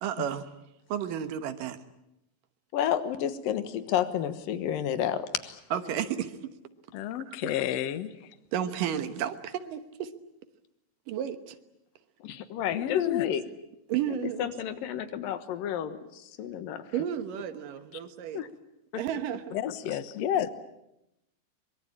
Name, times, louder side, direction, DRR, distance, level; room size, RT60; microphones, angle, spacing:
voice 1, 0.0-0.5 0.9-1.8 5.7-6.5 7.3-7.4 8.5-10.1 11.1-11.6 13.9-14.5 16.9-18.4 19.0-19.6, right 10 dB, 75° right, 10 dB, 2.8 m, -32 dB
voice 2, 2.7-5.6 12.2-13.4 14.1-16.9 18.3-18.5, left 10 dB, 80° left, 11 dB, 3.0 m, -30 dB
voice 3, 6.9-8.1 12.7-13.3 19.5-20.5, left 10 dB, 60° left, 12 dB, 1.9 m, -30 dB
24.0 x 22.5 x 8.7 m, 0.85 s
omnidirectional pair, 4.0 m